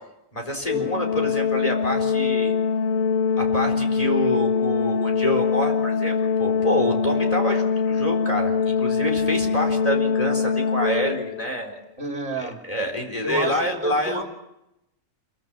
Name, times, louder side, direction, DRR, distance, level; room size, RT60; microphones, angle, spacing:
voice 1, 0.3-2.5 3.4-6.1 6.4-11.7 12.7-14.2, equal, 25° left, 2 dB, 4.4 m, -26 dB
Organ, 0.7-11.5, left 6 dB, 75° left, 2.0 m, -23 dB
voice 2, 12.0-12.6 13.2-14.2, right 2 dB, 60° right, 3 dB, 2.9 m, -31 dB
28.0 x 23.0 x 7.6 m, 0.89 s
omnidirectional pair, 1.4 m